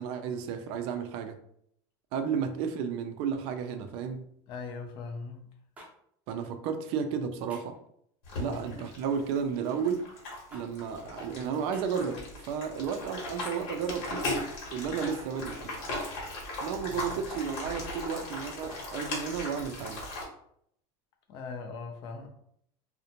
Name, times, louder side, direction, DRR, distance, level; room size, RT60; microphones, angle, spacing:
voice 1, 0.0-1.4 2.1-4.3 6.3-7.8 8.4-10.1 10.5-14.3 14.7-15.8 16.6-20.1, right 6 dB, 50° right, 8 dB, 0.3 m, -33 dB
voice 2, 4.5-5.5 8.3-8.6 16.9-17.1 21.3-22.3, left 4 dB, 40° left, 4 dB, 0.5 m, -40 dB
sound 1, 5.8-5.9 7.5-7.8 9.1-9.4 10.5-10.7 11.7-11.9, right 1 dB, 10° right, 0.6 m, -50 dB
sound 2, 8.2-20.2, left 1 dB, 55° left, 1.0 m, -38 dB
2.5 x 2.1 x 2.8 m, 0.69 s
supercardioid pair, 155°, 12 cm